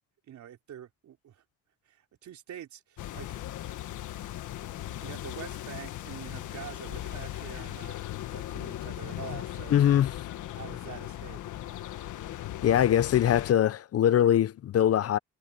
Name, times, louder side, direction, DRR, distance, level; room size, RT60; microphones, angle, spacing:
voice 1, 0.3-1.4 1.9-3.4 4.9-8.0 8.3-9.8 10.5-11.4, right 10 dB, 70° right, 4.1 m, -45 dB
sound 1, 3.0-13.5, left 13 dB, 80° left, 1.7 m, -38 dB
voice 2, 9.7-10.1 12.6-15.2, left 10 dB, 55° left, 0.7 m, -22 dB
cardioid pair, 90°, 30 cm